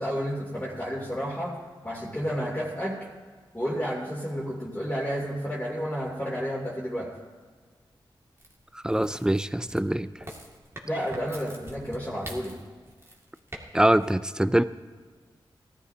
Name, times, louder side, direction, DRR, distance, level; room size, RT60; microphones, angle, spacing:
voice 1, 0.0-1.6 1.8-3.0 3.5-7.1 10.8-12.6, equal, 15° left, -6 dB, 2.9 m, -31 dB
sound 1, 8.4-13.6 13.9-14.1, right 1 dB, 30° right, 2.3 m, -44 dB
voice 2, 8.7-10.1 13.7-14.6, right 1 dB, 10° right, 14 dB, 0.5 m, -23 dB
18.0 x 13.0 x 2.8 m, 1.5 s
cardioid pair, 55°, 9 cm